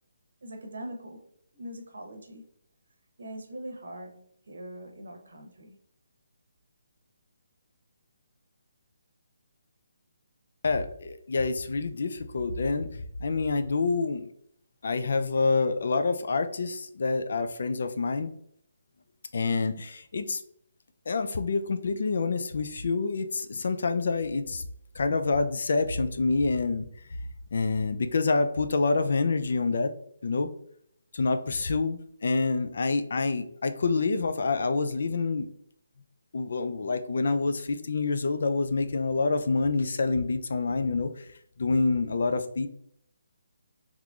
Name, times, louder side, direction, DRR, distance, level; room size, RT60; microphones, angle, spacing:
voice 1, 0.4-1.2 1.5-2.5 3.2-5.8, right 1 dB, 75° right, 3 dB, 0.9 m, -42 dB
voice 2, 10.6-14.3 14.8-18.3 19.3-20.4 21.1-24.6 24.9-26.9 27.5-29.9 30.2-30.5 31.1-35.5 36.3-41.3 41.6-42.7, left 3 dB, 55° left, 8 dB, 0.4 m, -27 dB
3.7 x 3.0 x 2.4 m, 0.68 s
hypercardioid pair, 175°, 0 cm